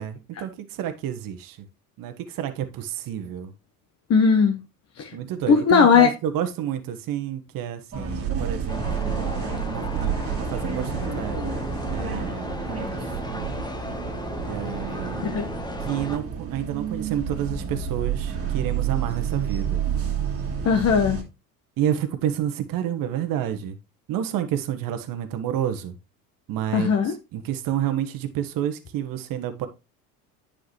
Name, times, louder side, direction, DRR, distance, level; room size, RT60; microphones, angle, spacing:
voice 1, 0.0-1.6 2.0-3.5 5.1-11.4 11.9-13.0 13.3-13.5 14.5-15.2 15.8-19.9 21.8-23.8 24.1-26.0 26.5-29.7, right 10 dB, 45° right, 1.2 m, -30 dB
voice 2, 4.1-4.6 5.0-5.1 5.5-6.1 15.2-15.5 20.6-21.2 26.7-27.1, left 6 dB, 30° left, 1.1 m, -18 dB
sound 1, 7.9-21.2, right 7 dB, 30° right, 2.3 m, -29 dB
sound 2, 8.7-16.2, left 2 dB, 10° left, 1.2 m, -35 dB
9.5 x 5.0 x 3.1 m
hypercardioid pair, 75°, 46 cm